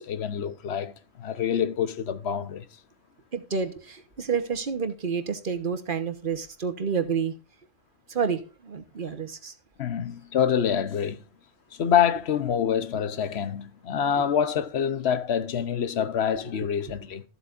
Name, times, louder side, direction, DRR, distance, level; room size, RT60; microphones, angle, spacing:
voice 1, 0.0-2.7 9.8-11.2 11.7-17.2, left 8 dB, 75° left, 1.1 m, -26 dB
voice 2, 3.3-7.3 8.1-9.5, right 6 dB, 55° right, 1.2 m, -29 dB
13.5 x 8.0 x 2.5 m
omnidirectional pair, 1.1 m